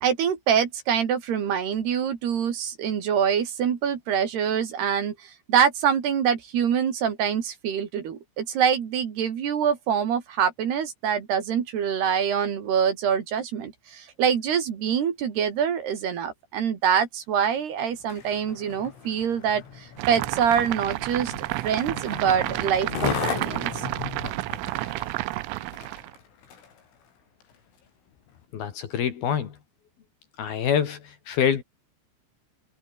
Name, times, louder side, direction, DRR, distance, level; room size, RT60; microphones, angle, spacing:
voice 1, 0.0-21.3 21.6-23.7, right 8 dB, 60° right, 4.4 m, -25 dB
Skateboard, 18.0-26.8 27.4-27.5, left 7 dB, 80° left, 7.6 m, -36 dB
sound 1, 20.0-26.1, right 20 dB, 85° right, 3.3 m, -31 dB
voice 2, 28.5-29.5 30.4-31.0 31.3-31.6, left 8 dB, 55° left, 3.7 m, -25 dB
omnidirectional pair, 5.7 m